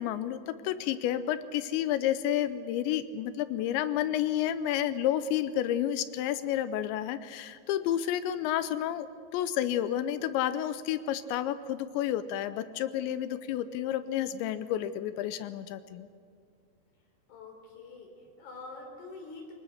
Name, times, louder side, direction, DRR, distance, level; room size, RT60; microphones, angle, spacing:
voice 1, 0.0-9.1 9.3-16.1, left 11 dB, 80° left, 13 dB, 2.8 m, -30 dB
voice 2, 17.3-19.5, left 3 dB, 40° left, 1 dB, 5.1 m, -46 dB
24.0 x 19.5 x 6.5 m, 2.3 s
omnidirectional pair, 5.5 m